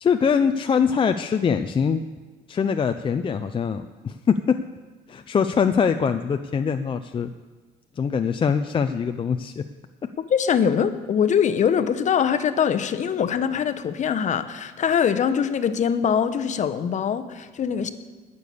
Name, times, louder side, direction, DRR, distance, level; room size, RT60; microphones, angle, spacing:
voice 1, 0.0-2.0 2.5-4.6 5.1-7.3 8.0-9.7, left 6 dB, 30° left, 8 dB, 0.5 m, -23 dB
voice 2, 10.3-17.9, left 7 dB, 45° left, 10 dB, 0.9 m, -23 dB
19.0 x 6.9 x 6.8 m, 1.4 s
cardioid pair, 110°, 17 cm